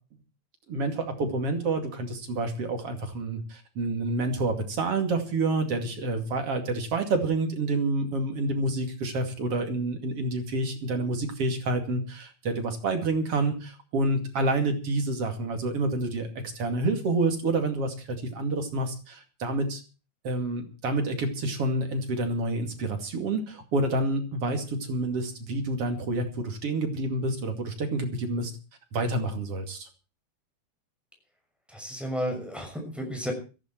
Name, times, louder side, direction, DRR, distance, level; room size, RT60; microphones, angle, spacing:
voice 1, 0.7-16.3 16.5-17.9 18.3-19.8 20.2-28.5 28.9-29.9, right 2 dB, 50° right, 5 dB, 3.3 m, -28 dB
voice 2, 31.7-33.3, equal, ahead, 2 dB, 6.1 m, -32 dB
17.0 x 15.0 x 4.5 m, 0.35 s
omnidirectional pair, 3.4 m